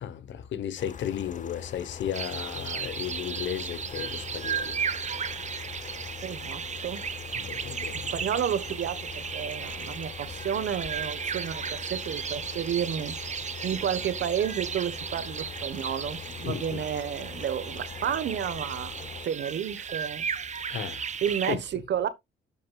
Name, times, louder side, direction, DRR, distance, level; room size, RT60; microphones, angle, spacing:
voice 1, 0.0-4.8 7.3-8.3 16.4-16.8 20.7-21.0 21.5-21.6, left 9 dB, 70° left, 1.1 m, -34 dB
sound 1, 0.8-19.3, left 7 dB, 40° left, 0.7 m, -42 dB
sound 2, 2.1-21.6, right 7 dB, 35° right, 0.8 m, -35 dB
voice 2, 6.2-7.0 7.9-13.1 13.6-18.9 19.2-20.3 21.2-22.1, right 9 dB, 60° right, 1.2 m, -31 dB
10.0 x 6.5 x 2.4 m
cardioid pair, 90°, 20 cm